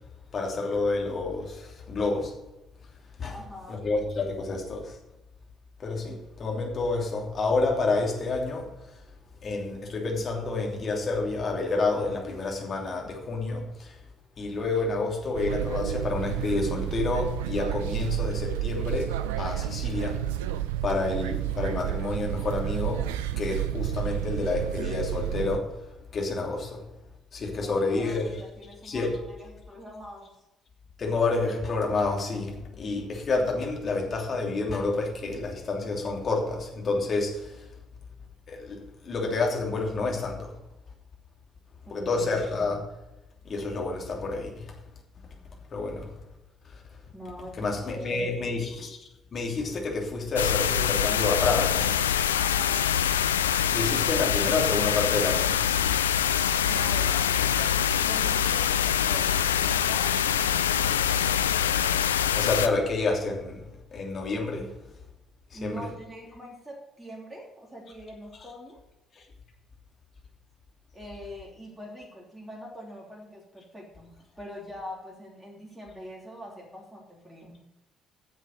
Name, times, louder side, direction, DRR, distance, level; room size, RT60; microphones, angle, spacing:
voice 1, 0.3-2.3 3.2-3.4 3.7-5.0 5.8-8.7 9.4-14.0 14.4-20.2 20.8-23.1 23.4-25.7 26.1-26.8 27.3-28.4 28.8-29.1 31.0-37.7 38.5-40.5 41.9-42.8 43.4-44.7 45.7-46.1 46.7-46.8 47.6-49.0 49.3-52.0 53.7-55.6 62.0-63.6 63.9-64.7 65.5-65.9, left 3 dB, 40° left, 3.0 m, -29 dB
voice 2, 3.3-3.8 27.5-30.3 41.9-42.3 47.1-48.6 52.4-52.9 56.7-60.7 65.5-68.8 70.9-77.6, equal, 10° right, 3.2 m, -43 dB
sound 1, 15.3-25.6, right 12 dB, 70° right, 0.4 m, -31 dB
sound 2, 50.4-62.7, left 9 dB, 80° left, 0.4 m, -24 dB
10.5 x 7.1 x 6.5 m
figure-of-eight pair, 45°, 0 cm